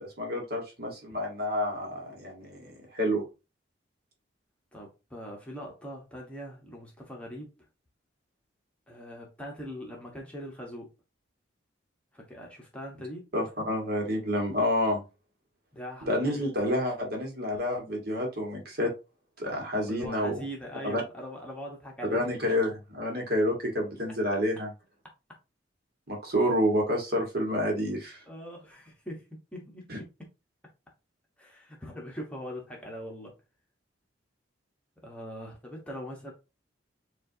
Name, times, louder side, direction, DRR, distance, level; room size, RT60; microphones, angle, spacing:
voice 1, 0.0-3.2 13.3-15.0 16.1-18.9 19.4-20.4 20.8-21.0 22.1-24.7 26.1-28.2 29.9-30.0, equal, 50° right, 1.5 m, -29 dB
voice 2, 4.7-7.5 8.9-10.9 12.1-13.3 15.7-16.4 19.8-22.3 28.3-29.2 29.5-30.1 31.4-33.3 35.0-36.3, equal, 5° left, 1.0 m, -41 dB
7.3 x 2.5 x 2.7 m
head